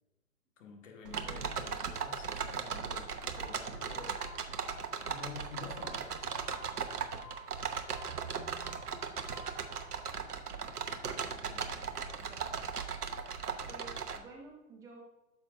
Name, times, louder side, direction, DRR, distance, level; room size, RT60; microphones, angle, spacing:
voice 1, 0.6-4.2 5.1-7.0 11.0-11.9 13.5-13.6, left 5 dB, 55° left, 2 dB, 1.8 m, -50 dB
sound 1, 1.1-14.2, right 6 dB, 75° right, 1.0 m, -38 dB
Glass, 3.3-10.0, left 1 dB, 40° left, 0.9 m, -55 dB
voice 2, 12.2-12.7 13.7-15.0, right 3 dB, 5° right, -1 dB, 0.6 m, -52 dB
10.0 x 6.6 x 2.6 m, 1.0 s
figure-of-eight pair, 130°, 46 cm